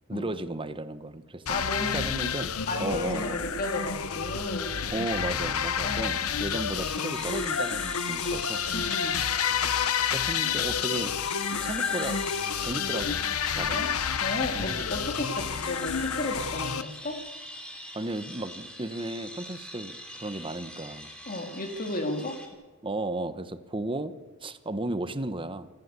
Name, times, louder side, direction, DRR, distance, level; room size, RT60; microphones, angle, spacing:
voice 1, 0.1-1.4 1.9-2.5 2.8-3.4 4.9-8.6 10.0-11.1 11.6-12.2 12.6-13.2 13.5-13.8 14.5-14.9 17.9-21.1 22.8-24.1 24.4-25.7, right 2 dB, 25° right, 12 dB, 1.1 m, -34 dB
sound 1, 1.5-16.8, left 7 dB, 80° left, 0.9 m, -29 dB
voice 2, 1.5-2.1 2.7-4.7 5.8-6.2 8.7-9.2 13.7-13.9 14.2-17.2 21.3-22.4, left 2 dB, 40° left, 5 dB, 2.6 m, -33 dB
sound 2, 6.5-22.5, equal, 5° left, 3.2 m, -43 dB
27.5 x 13.5 x 8.3 m, 1.3 s
head